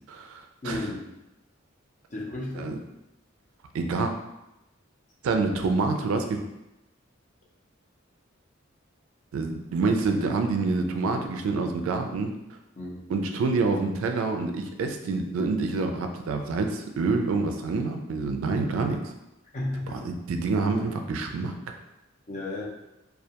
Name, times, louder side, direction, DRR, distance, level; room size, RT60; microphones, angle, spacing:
voice 1, 0.1-0.8 2.6-2.8 3.7-4.1 5.2-6.4 9.3-12.3 13.1-19.1 19.9-21.5, right 3 dB, 90° right, 5 dB, 0.3 m, -27 dB
voice 2, 0.6-1.1 2.1-2.8 12.8-13.0 19.5-20.0 22.3-22.6, left 2 dB, 35° left, -3 dB, 0.5 m, -33 dB
2.3 x 2.2 x 2.7 m, 0.93 s
head